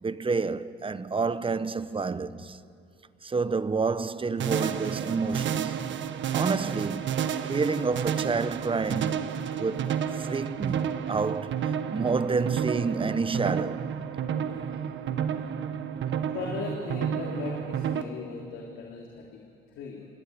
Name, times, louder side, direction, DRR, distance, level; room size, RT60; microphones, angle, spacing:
voice 1, 0.0-2.6 3.2-5.9 6.3-7.2 7.4-13.9, right 4 dB, 25° right, 1.0 m, -29 dB
sound 1, 4.4-18.0, right 8 dB, 70° right, 1.4 m, -31 dB
voice 2, 16.3-20.1, left 5 dB, 85° left, 3.3 m, -38 dB
26.5 x 20.5 x 9.8 m
cardioid pair, 90°, 20 cm